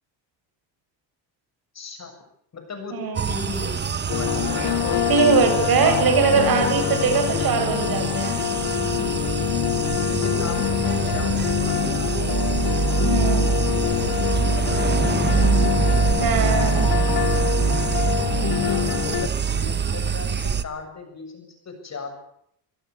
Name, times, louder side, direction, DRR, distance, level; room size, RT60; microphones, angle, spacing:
voice 1, 1.7-2.1 2.5-3.0 3.3-3.8 4.1-5.4 5.8-6.0 9.7-12.5 14.5-15.6 18.3-22.1, left 4 dB, 35° left, 5 dB, 7.5 m, -37 dB
voice 2, 2.9-3.2 5.1-8.3 13.0-13.5 16.2-16.9, right 5 dB, 50° right, 5 dB, 7.4 m, -21 dB
sound 1, 3.2-20.6, right 6 dB, 25° right, 1.0 m, -24 dB
sound 2, 4.1-19.3, left 13 dB, 55° left, 1.0 m, -25 dB
27.0 x 16.5 x 8.5 m, 0.73 s
cardioid pair, 130°, 46 cm